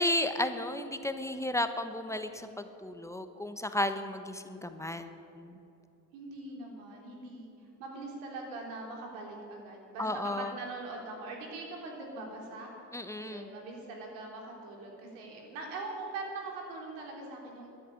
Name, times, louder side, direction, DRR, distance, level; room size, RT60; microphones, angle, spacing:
voice 1, 0.0-5.6 10.0-10.5 12.9-13.5, left 1 dB, 10° left, 8 dB, 1.0 m, -33 dB
voice 2, 6.1-7.5 7.8-10.1 10.4-12.7 13.2-17.7, right 3 dB, 90° right, 0 dB, 3.8 m, -42 dB
12.5 x 10.0 x 9.7 m, 2.8 s
supercardioid pair, 95°, 38 cm